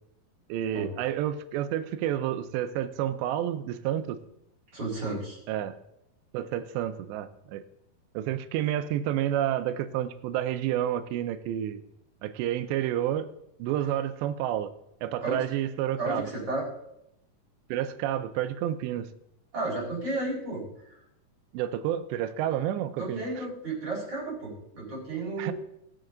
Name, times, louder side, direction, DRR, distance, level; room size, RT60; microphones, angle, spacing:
voice 1, 0.5-4.2 5.5-5.8 6.3-7.6 8.1-11.8 12.2-13.3 13.6-14.7 15.0-16.3 17.7-19.1 21.5-23.2 25.4-25.5, right 11 dB, 85° right, 11 dB, 2.9 m, -29 dB
voice 2, 4.7-5.4 15.2-15.4 16.0-16.7 19.5-20.9 23.0-25.5, right 2 dB, 25° right, -6 dB, 5.0 m, -33 dB
20.5 x 7.0 x 3.9 m, 0.81 s
omnidirectional pair, 4.9 m